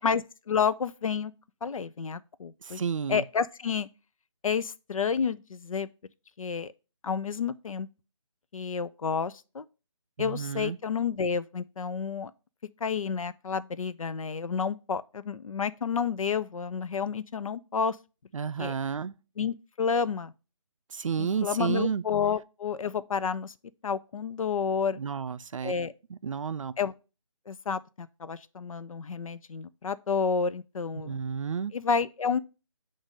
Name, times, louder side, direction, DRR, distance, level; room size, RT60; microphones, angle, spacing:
voice 1, 0.0-1.3 1.6-2.8 3.1-3.9 4.4-5.9 6.4-6.7 7.0-7.9 8.5-9.7 10.2-12.3 12.8-18.0 18.6-18.7 19.4-20.3 21.2-23.5 23.8-25.0 25.6-25.9 26.8-26.9 27.5-31.2 31.7-32.4, left 6 dB, 85° left, 0.5 m, -30 dB
voice 2, 2.6-3.2 10.2-10.8 18.3-19.1 20.9-22.0 24.9-25.7 26.1-26.7 31.0-31.7, right 6 dB, 75° right, 0.4 m, -31 dB
7.2 x 2.6 x 5.0 m
hypercardioid pair, 165°, 17 cm